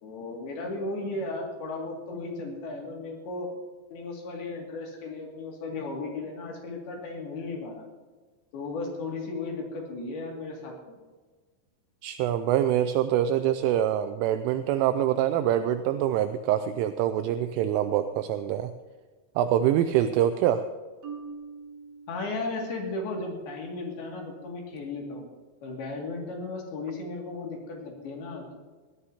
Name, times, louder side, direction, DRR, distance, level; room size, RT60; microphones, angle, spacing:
voice 1, 0.0-3.5 3.9-7.9 8.5-10.7 22.1-25.3 25.6-28.5, left 3 dB, 55° left, 0 dB, 3.8 m, -35 dB
voice 2, 12.0-18.7 19.4-20.6, right 11 dB, 85° right, 9 dB, 3.0 m, -25 dB
Marimba xylophone, 21.0-23.1, right 5 dB, 40° right, 3.6 m, -44 dB
21.0 x 14.5 x 2.8 m, 1.4 s
omnidirectional pair, 5.9 m